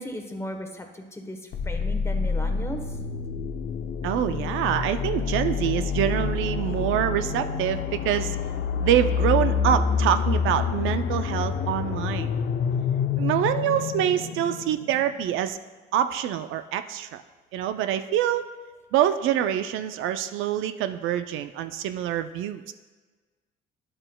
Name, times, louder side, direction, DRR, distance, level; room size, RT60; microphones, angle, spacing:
voice 1, 0.0-3.0, equal, 15° left, 4 dB, 1.0 m, -36 dB
sound 1, 1.5-15.3, left 6 dB, 65° left, 0.6 m, -27 dB
voice 2, 4.0-8.4 8.8-12.3 13.2-15.6 15.9-17.2 17.5-18.4 18.9-22.7, right 10 dB, 90° right, 10 dB, 0.4 m, -25 dB
10.0 x 7.7 x 2.2 m, 1.3 s
cardioid pair, 90°, 20 cm